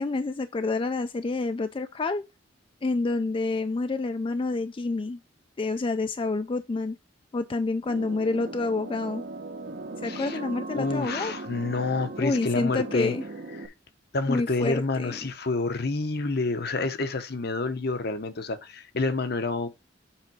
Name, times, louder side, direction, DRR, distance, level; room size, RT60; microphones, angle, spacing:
voice 1, 0.0-2.2 2.8-5.2 5.6-7.0 7.3-9.2 10.0-11.3 12.2-13.2 14.3-15.2, left 3 dB, 30° left, 0.4 m, -28 dB
sound 1, 7.9-13.7, right 2 dB, 65° right, 0.9 m, -38 dB
voice 2, 10.0-10.4 10.7-13.1 14.1-19.7, left 3 dB, 60° left, 0.9 m, -28 dB
7.3 x 3.9 x 4.6 m
head